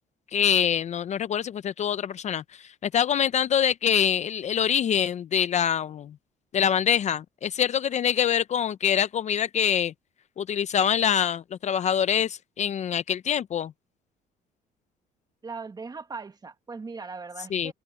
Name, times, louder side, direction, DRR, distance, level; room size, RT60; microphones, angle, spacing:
voice 1, 0.3-6.1 6.5-9.9 10.4-13.7 17.5-17.7, left 9 dB, 45° left, 0.5 m, -25 dB
voice 2, 15.4-17.7, right 4 dB, 25° right, 1.8 m, -39 dB
cardioid pair, 110°, 17 cm